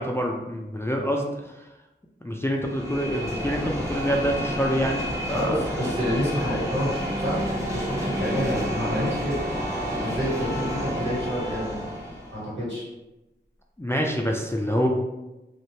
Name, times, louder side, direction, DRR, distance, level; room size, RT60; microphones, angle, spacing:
voice 1, 0.0-1.6 2.2-5.0 5.3-5.6 13.8-14.9, equal, 15° left, 0 dB, 0.3 m, -26 dB
sound 1, 2.6-12.4, equal, 15° right, 0.8 m, -31 dB
voice 2, 5.3-9.4 10.0-12.0 12.3-12.9, equal, 70° right, -8 dB, 1.5 m, -28 dB
Bowed string instrument, 6.3-11.1, right 2 dB, 50° right, 0.6 m, -41 dB
sound 2, 6.9-11.9, left 1 dB, 85° right, 1.1 m, -36 dB
2.6 x 2.1 x 3.1 m, 0.99 s
wide cardioid pair, 55°, 19 cm